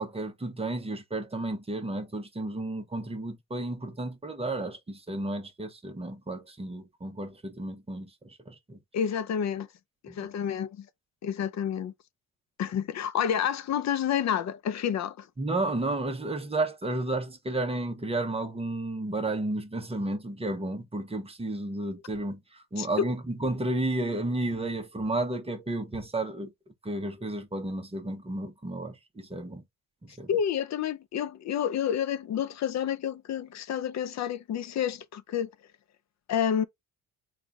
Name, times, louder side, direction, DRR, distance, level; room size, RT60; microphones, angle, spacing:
voice 1, 0.0-8.8 10.1-10.3 15.4-26.5 26.8-29.6 30.0-30.3, right 2 dB, 15° right, 0.8 m, -32 dB
voice 2, 8.9-9.7 10.0-10.9 11.2-11.9 12.6-15.3 22.8-23.1 30.3-35.5 36.3-36.6, left 8 dB, 45° left, 0.5 m, -29 dB
3.8 x 2.3 x 3.5 m
cardioid pair, 105°, 40 cm